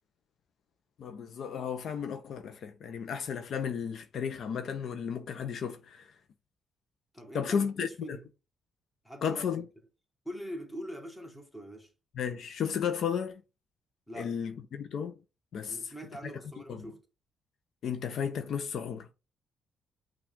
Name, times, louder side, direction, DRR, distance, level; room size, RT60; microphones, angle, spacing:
voice 1, 1.0-6.1 7.3-8.2 9.2-9.6 12.2-13.4 14.2-15.1 15.5-15.9 16.7-16.9 17.8-19.1, left 7 dB, 65° left, 0.6 m, -33 dB
voice 2, 7.1-8.3 9.0-9.6 10.2-11.9 14.1-14.3 15.7-17.0, equal, 5° left, 1.5 m, -43 dB
5.9 x 2.4 x 3.6 m
cardioid pair, 90°, 0 cm